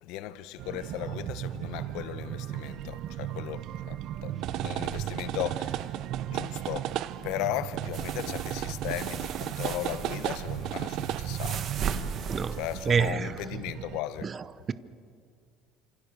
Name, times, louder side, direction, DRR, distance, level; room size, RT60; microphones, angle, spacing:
voice 1, 0.0-6.0 6.3-6.9 7.2-11.7 12.5-14.3, left 13 dB, 75° left, 1.0 m, -36 dB
sound 1, 0.6-14.0, right 12 dB, 55° right, 0.7 m, -35 dB
sound 2, 7.9-13.1, right 6 dB, 40° right, 1.5 m, -37 dB
voice 2, 12.9-13.3 14.2-14.7, right 6 dB, 25° right, 0.8 m, -27 dB
28.0 x 26.5 x 6.7 m
cardioid pair, 160°, 0 cm